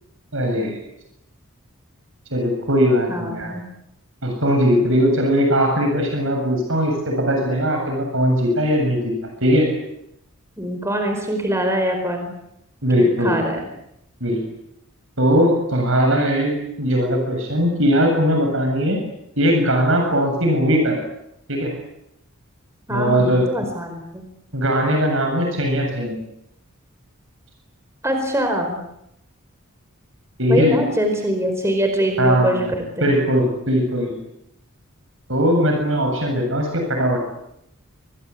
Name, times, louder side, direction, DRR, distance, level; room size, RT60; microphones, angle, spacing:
voice 1, 0.3-0.8 2.3-3.5 4.2-9.1 9.4-9.7 12.8-13.4 14.2-14.4 15.2-19.0 19.4-21.0 21.5-21.7 22.9-23.5 24.5-26.2 30.4-30.8 32.2-32.7 33.0-34.1 35.3-37.2, equal, 65° right, 2 dB, 7.7 m, -19 dB
voice 2, 3.1-3.6 10.6-12.3 13.0-13.6 22.9-24.2 28.0-28.8 30.5-33.1, equal, 15° right, 4 dB, 4.6 m, -23 dB
28.0 x 23.5 x 8.5 m, 0.81 s
head